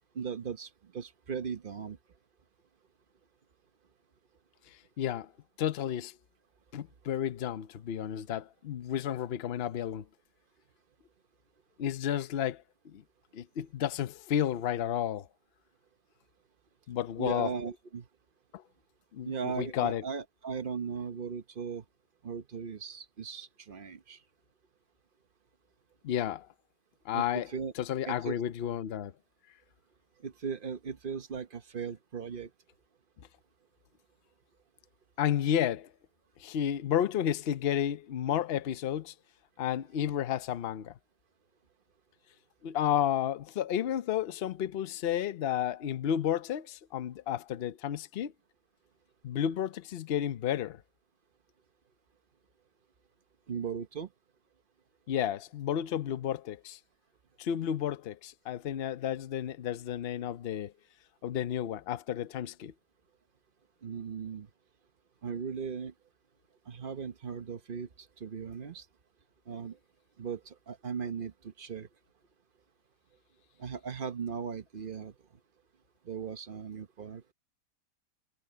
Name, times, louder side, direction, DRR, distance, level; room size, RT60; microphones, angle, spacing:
voice 1, 0.1-2.0 17.2-18.1 19.3-21.8 22.2-24.2 27.1-27.7 28.0-28.3 30.2-32.5 53.5-54.1 63.8-64.5 65.2-65.9 66.7-67.9 68.2-68.8 69.5-69.8 70.2-71.9 73.6-75.1 76.0-77.2, right 6 dB, 40° right, 0.9 m, -38 dB
voice 2, 5.0-5.3 5.6-6.1 6.7-10.0 11.8-13.0 13.3-15.3 16.9-17.5 18.5-18.6 19.1-20.0 26.0-26.5 27.1-27.5 27.8-29.1 35.2-35.9 36.4-39.1 39.6-40.9 42.6-48.3 49.2-50.8 55.1-56.8 57.4-60.7 61.2-62.7, left 10 dB, 55° left, 0.7 m, -32 dB
omnidirectional pair, 1.8 m